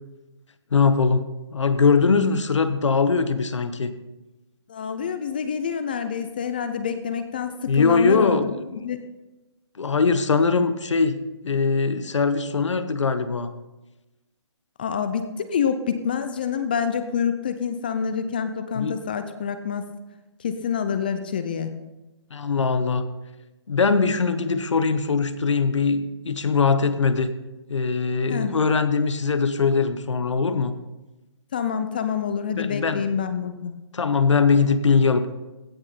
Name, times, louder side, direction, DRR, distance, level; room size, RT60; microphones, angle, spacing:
voice 1, 0.7-3.9 7.7-9.0 9.8-11.2 11.4-13.5 18.7-19.0 22.3-23.0 23.7-27.3 27.7-30.7 32.6-33.1 33.9-35.3, left 5 dB, 90° left, 11 dB, 1.0 m, -21 dB
voice 2, 4.7-8.4 8.8-9.0 14.8-19.9 20.4-21.7 28.3-28.5 31.5-33.7, left 7 dB, 20° left, 10 dB, 0.4 m, -27 dB
16.0 x 6.2 x 4.2 m, 1.0 s
hypercardioid pair, 165°, 15 cm